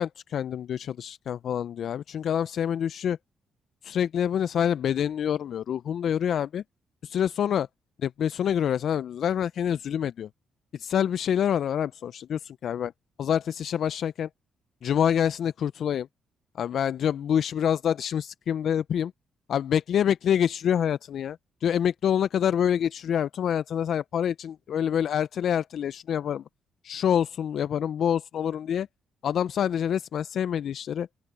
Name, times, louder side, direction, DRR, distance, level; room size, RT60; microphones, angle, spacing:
voice 1, 0.0-3.2 3.8-6.6 7.0-7.7 8.0-10.3 10.7-12.9 13.2-14.3 14.8-16.1 16.6-19.1 19.5-26.4 26.8-28.9 29.2-31.1, left 9 dB, 65° left, 0.5 m, -26 dB
open air
supercardioid pair, 50°, 0 cm